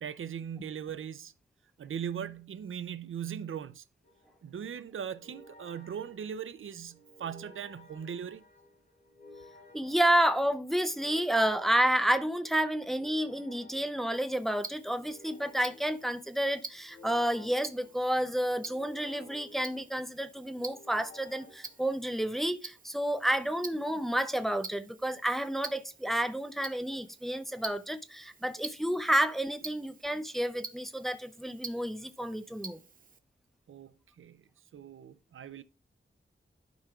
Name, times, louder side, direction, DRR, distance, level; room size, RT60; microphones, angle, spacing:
voice 1, 0.0-1.3 1.8-3.8 4.4-8.4 33.7-35.6, right 8 dB, 75° right, 0.5 m, -39 dB
sound 1, 4.0-22.4, left 2 dB, 55° left, 2.6 m, -56 dB
voice 2, 9.7-32.8, right 1 dB, ahead, 0.5 m, -30 dB
Tick-tock, 14.1-33.2, right 4 dB, 40° right, 0.7 m, -48 dB
12.0 x 5.0 x 2.3 m
wide cardioid pair, 100°, 21 cm